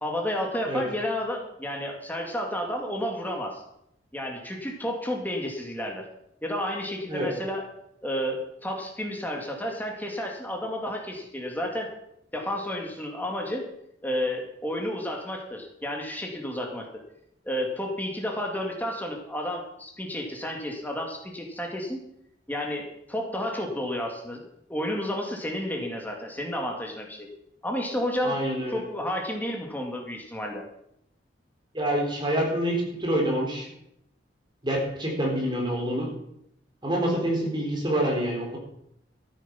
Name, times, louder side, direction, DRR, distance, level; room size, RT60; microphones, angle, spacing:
voice 1, 0.0-3.6 4.1-6.1 6.4-7.7 8.0-11.9 12.3-13.6 14.0-17.0 17.5-22.0 22.5-27.3 27.6-28.4 28.7-30.7, left 1 dB, 10° left, 1 dB, 2.2 m, -31 dB
voice 2, 28.2-28.8 31.7-33.7 34.6-36.1 36.8-38.6, right 1 dB, 25° right, 0 dB, 3.8 m, -26 dB
14.0 x 9.4 x 5.9 m, 0.77 s
head